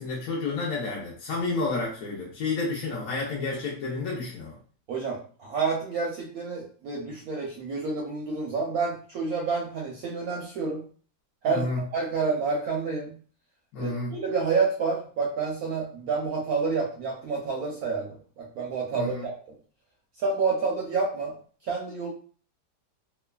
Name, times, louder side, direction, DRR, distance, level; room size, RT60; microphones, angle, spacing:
voice 1, 0.0-4.5 11.5-11.8 13.7-14.1 18.9-19.2, left 3 dB, 65° left, -4 dB, 0.9 m, -30 dB
voice 2, 4.9-10.8 11.4-11.7 11.9-13.2 13.8-18.1 18.4-19.3 20.2-21.4 21.6-22.1, right 4 dB, 70° right, -1 dB, 0.8 m, -29 dB
3.0 x 2.2 x 2.2 m, 0.42 s
omnidirectional pair, 2.0 m